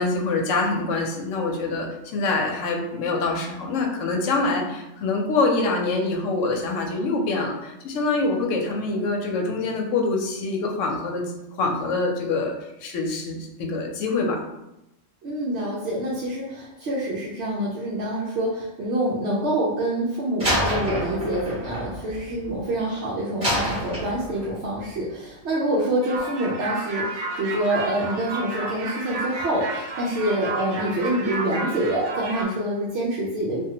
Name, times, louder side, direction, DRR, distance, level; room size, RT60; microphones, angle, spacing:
voice 1, 0.0-11.2 11.6-12.5 12.8-14.4, left 3 dB, 75° left, 1 dB, 0.9 m, -25 dB
voice 2, 15.2-33.6, right 1 dB, 65° right, -6 dB, 0.8 m, -26 dB
Slam, 20.4-22.8 23.4-24.6, equal, 35° right, 1.2 m, -28 dB
sound 1, 26.0-32.4, right 2 dB, 85° right, 1.0 m, -31 dB
2.6 x 2.3 x 2.7 m, 0.90 s
omnidirectional pair, 1.3 m